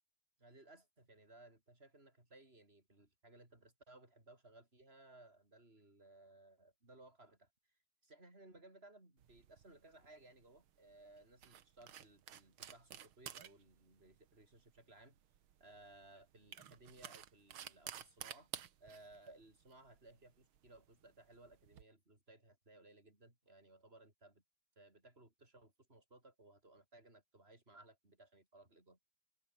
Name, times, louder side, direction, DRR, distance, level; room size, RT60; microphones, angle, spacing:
voice 1, 0.4-7.5 8.0-15.2 15.6-18.5 18.8-24.4 24.8-29.0, right 2 dB, 15° right, 7.0 m, -61 dB
sound 1, 9.2-21.8, right 10 dB, 75° right, 1.2 m, -54 dB
omnidirectional pair, 4.4 m